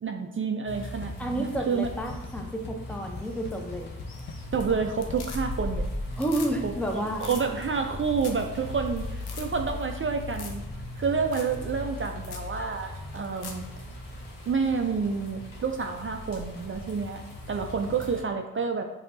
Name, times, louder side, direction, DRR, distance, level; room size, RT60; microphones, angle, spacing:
voice 1, 0.0-1.9 4.5-5.9 6.6-10.6 11.0-13.7 14.5-18.8, right 5 dB, 35° right, 4 dB, 0.4 m, -29 dB
sound 1, 0.7-18.2, left 1 dB, 60° left, 1.0 m, -38 dB
sound 2, 1.0-5.6, left 4 dB, 30° left, 0.4 m, -42 dB
voice 2, 1.2-3.9 6.2-7.3, right 1 dB, 5° left, 2 dB, 0.7 m, -30 dB
sound 3, 4.0-4.5 4.8-5.8 6.1-6.5 6.8-6.9 7.2-7.4 7.9-8.0 8.2-8.5 8.8-8.9 9.2-9.5 10.3-10.6 10.9-11.0 11.3-11.6 11.9-12.0 12.3-12.5 13.1-13.7 15.8-15.9, left 5 dB, 80° left, 0.7 m, -42 dB
5.0 x 2.8 x 2.7 m, 1.0 s
cardioid pair, 55°, 38 cm